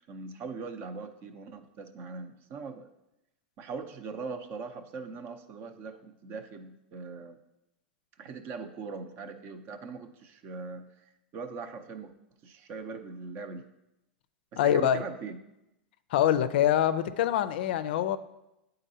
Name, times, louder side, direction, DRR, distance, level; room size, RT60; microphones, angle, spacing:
voice 1, 0.1-2.9 3.6-7.4 8.2-12.1 12.4-13.6 14.5-15.4, right 4 dB, 45° right, 9 dB, 0.6 m, -41 dB
voice 2, 14.6-15.0 16.1-18.2, left 11 dB, 70° left, 12 dB, 0.4 m, -25 dB
8.9 x 3.9 x 2.7 m, 0.90 s
hypercardioid pair, 110°, 5 cm